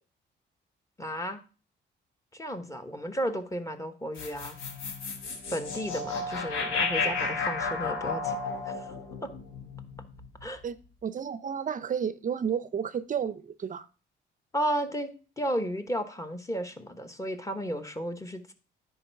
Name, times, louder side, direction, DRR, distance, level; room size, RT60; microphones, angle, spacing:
voice 1, 1.0-1.4 2.3-4.6 5.5-8.9 9.2-9.3 10.4-10.6 14.5-18.5, equal, 15° left, 1.1 m, -33 dB
sound 1, 4.2-10.5, left 4 dB, 90° left, 1.3 m, -32 dB
voice 2, 10.5-13.9, right 7 dB, 40° right, 0.5 m, -32 dB
9.9 x 4.6 x 4.6 m
cardioid pair, 90°, 20 cm